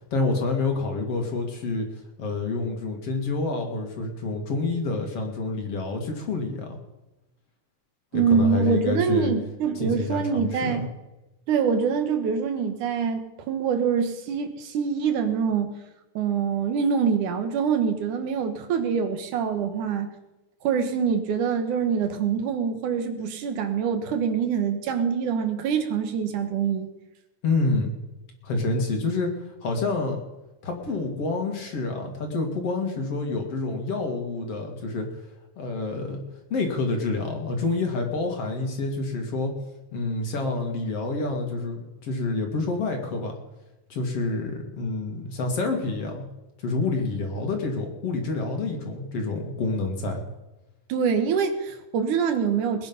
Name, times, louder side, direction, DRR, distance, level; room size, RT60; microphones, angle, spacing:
voice 1, 0.1-1.9 2.2-6.8 8.1-9.3 9.8-10.8 27.4-27.9 28.4-29.3 29.6-30.2 30.6-35.1 35.6-36.2 36.5-39.5 39.9-43.3 43.9-46.3 46.6-50.2, left 3 dB, 55° left, 3 dB, 3.2 m, -28 dB
voice 2, 8.1-10.9 11.5-13.2 13.5-15.7 16.1-20.1 20.6-26.9 50.9-52.9, right 6 dB, 90° right, 7 dB, 2.9 m, -25 dB
21.0 x 9.9 x 5.5 m, 1.0 s
omnidirectional pair, 3.4 m